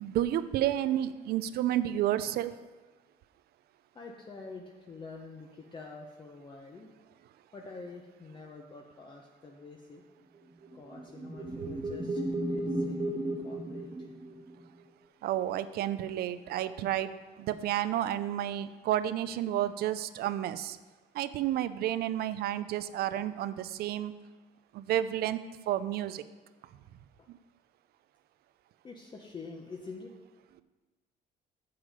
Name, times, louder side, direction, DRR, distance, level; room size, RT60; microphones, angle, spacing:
voice 1, 0.0-2.5 11.6-11.8 15.2-20.8 21.1-24.1 24.7-25.4 25.7-26.2 27.3-27.4, right 12 dB, 70° right, 14 dB, 0.5 m, -31 dB
voice 2, 3.9-6.9 7.5-10.0 10.7-14.1 28.8-30.1, left 3 dB, 30° left, 0 dB, 0.9 m, -47 dB
sound 1, 10.6-14.6, right 1 dB, 35° right, 1.4 m, -34 dB
8.6 x 7.3 x 5.0 m, 1.3 s
cardioid pair, 110°, 17 cm